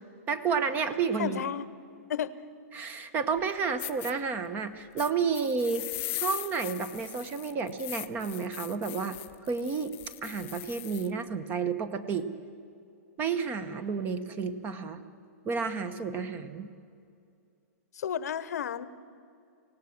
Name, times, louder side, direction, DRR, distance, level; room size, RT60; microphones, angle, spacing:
voice 1, 0.3-1.4 2.7-5.8 6.1-9.2 9.5-12.3 13.2-15.0 15.4-16.7, right 5 dB, 20° right, 12 dB, 1.0 m, -31 dB
voice 2, 1.2-1.7 2.1-2.4 17.9-18.9, left 9 dB, 80° left, 16 dB, 1.0 m, -32 dB
sound 1, 3.4-3.5 3.8-4.1 5.0-11.1, left 18 dB, 25° left, 0.6 m, -39 dB
25.5 x 17.5 x 7.3 m, 2.4 s
hypercardioid pair, 155°, 9 cm